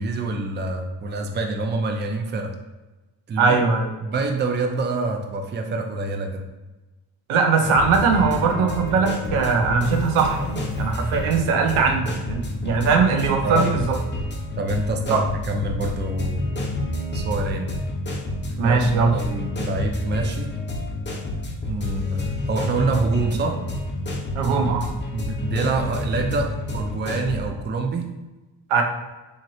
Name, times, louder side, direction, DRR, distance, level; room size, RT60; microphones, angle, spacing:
voice 1, 0.0-2.5 3.3-3.6 4.0-6.5 13.4-13.8 14.6-16.5 17.1-17.7 18.6-20.5 21.7-23.6 25.1-28.1, right 2 dB, 25° right, 3 dB, 0.4 m, -26 dB
voice 2, 3.4-3.9 7.3-14.0 15.1-15.2 18.6-19.1 24.4-24.9 28.7-28.8, right 5 dB, 85° right, 3 dB, 0.6 m, -20 dB
sound 1, 7.6-27.4, left 1 dB, 25° left, 0.6 m, -29 dB
3.0 x 2.6 x 2.6 m, 1.1 s
supercardioid pair, 55°, 48 cm